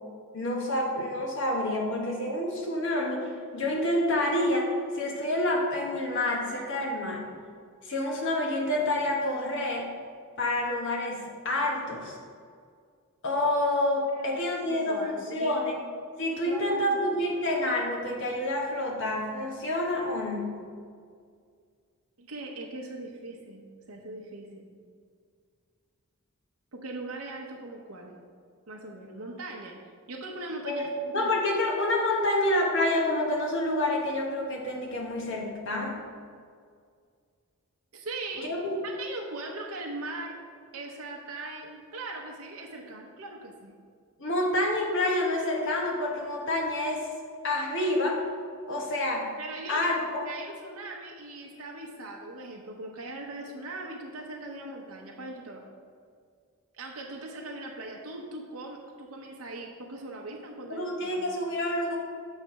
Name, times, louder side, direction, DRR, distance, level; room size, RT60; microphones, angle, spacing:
voice 1, 0.3-7.2 7.8-9.9 10.4-12.2 13.2-15.8 16.2-20.5 30.6-30.9 31.1-36.0 38.4-38.8 44.2-47.1 47.4-48.2 48.7-49.3 49.7-50.2 60.7-62.0, left 1 dB, 60° left, 0 dB, 1.1 m, -28 dB
voice 2, 14.7-15.8 16.4-17.3 22.2-24.7 26.7-28.2 28.7-29.7 30.1-31.3 37.9-38.5 38.8-40.3 40.7-43.7 49.4-55.6 56.8-61.3, right 2 dB, 80° right, 0 dB, 0.8 m, -40 dB
7.2 x 3.2 x 5.8 m, 2.1 s
head